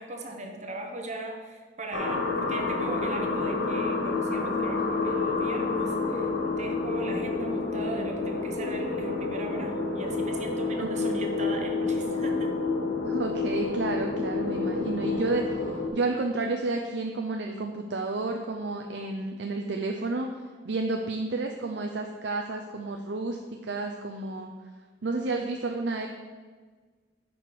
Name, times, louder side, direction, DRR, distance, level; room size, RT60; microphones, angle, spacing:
voice 1, 0.0-12.6, right 2 dB, 35° right, 3 dB, 0.9 m, -39 dB
sound 1, 1.9-15.9, left 3 dB, 75° left, 1.1 m, -29 dB
voice 2, 10.8-11.2 13.0-24.5 25.0-26.1, right 3 dB, 65° right, 3 dB, 0.6 m, -31 dB
9.8 x 5.0 x 4.7 m, 1.4 s
head